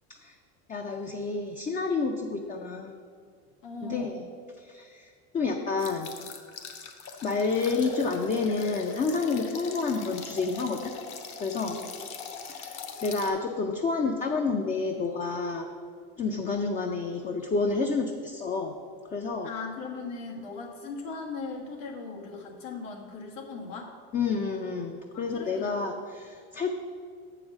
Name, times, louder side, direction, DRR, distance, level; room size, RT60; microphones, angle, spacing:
voice 1, 0.7-2.9 3.8-4.2 4.6-6.1 7.2-10.9 11.4-11.8 12.5-15.7 16.2-18.7 19.1-19.5 24.1-26.8, left 4 dB, 20° left, 3 dB, 0.5 m, -29 dB
voice 2, 3.6-4.2 11.6-11.9 19.4-23.9 25.1-25.7, left 4 dB, 90° left, 0 dB, 1.6 m, -38 dB
sound 1, 5.8-13.3, left 5 dB, 50° left, 1.0 m, -41 dB
7.2 x 4.9 x 7.2 m, 2.1 s
supercardioid pair, 135°, 36 cm